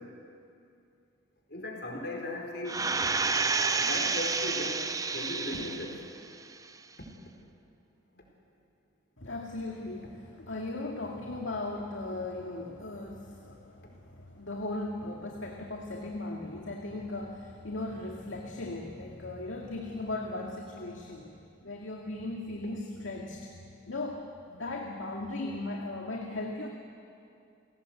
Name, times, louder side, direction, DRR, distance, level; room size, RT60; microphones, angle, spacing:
voice 1, 1.5-2.9 3.6-4.9 5.1-6.0 7.0-7.1 8.1-8.3, left 2 dB, 55° left, 0 dB, 4.5 m, -37 dB
sound 1, 2.7-6.1 6.5-6.6, right 4 dB, 15° right, 0.6 m, -29 dB
voice 2, 9.2-21.3 21.6-23.5 23.9-26.7, left 2 dB, 85° left, 0 dB, 2.1 m, -37 dB
29.5 x 18.0 x 8.0 m, 2.5 s
head